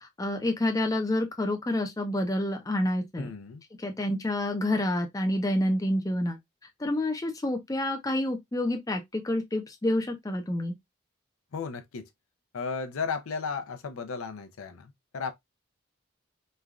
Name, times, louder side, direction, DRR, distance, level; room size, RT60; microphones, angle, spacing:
voice 1, 0.2-3.3 3.8-6.4 6.8-10.7, left 1 dB, 15° left, 0.4 m, -28 dB
voice 2, 3.2-3.6 11.5-12.1 12.5-15.3, left 5 dB, 85° left, 0.5 m, -34 dB
3.2 x 2.3 x 2.3 m
head